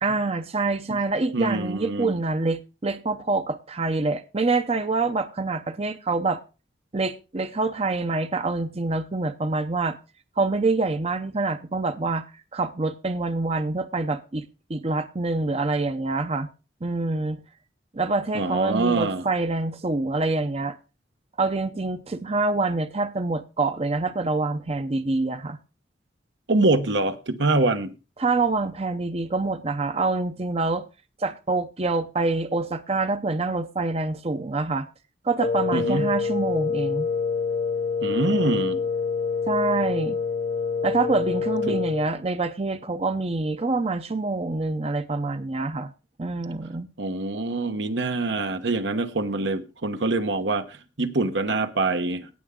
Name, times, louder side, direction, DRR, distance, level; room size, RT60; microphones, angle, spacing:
voice 1, 0.0-6.4 6.9-10.0 10.4-14.4 14.7-16.5 16.8-17.4 17.9-20.8 21.4-25.6 28.2-30.9 31.2-34.9 35.2-37.1 39.5-40.2 40.8-45.9 46.2-46.9, right 3 dB, 35° right, 0.7 m, -26 dB
voice 2, 1.3-2.2 18.3-19.3 26.5-27.9 35.7-36.1 38.0-38.8 41.7-41.8 47.0-52.3, right 2 dB, 75° right, 1.2 m, -25 dB
Wind instrument woodwind instrument, 35.4-42.1, left 5 dB, 45° left, 1.1 m, -26 dB
18.0 x 6.9 x 3.7 m
head